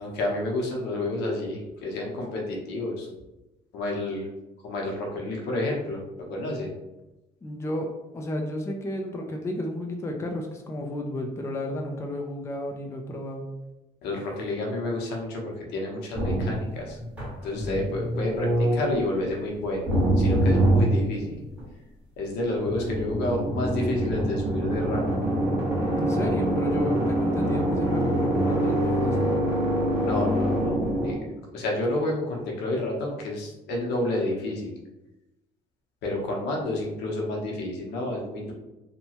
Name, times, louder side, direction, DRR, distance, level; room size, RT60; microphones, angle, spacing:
voice 1, 0.0-3.1 3.7-4.3 4.6-6.0 6.3-6.7 14.0-17.0 17.4-21.4 22.2-25.2 30.0-31.2 31.5-34.7 36.0-38.5, left 2 dB, 85° left, -1 dB, 0.8 m, -30 dB
voice 2, 7.4-13.4 25.9-29.3, left 1 dB, 15° left, 2 dB, 0.4 m, -32 dB
sound 1, 16.1-19.2 19.9-21.6 22.6-31.1, right 1 dB, 5° right, 1.3 m, -25 dB
2.9 x 2.2 x 2.8 m, 1.0 s
cardioid pair, 110°, 17 cm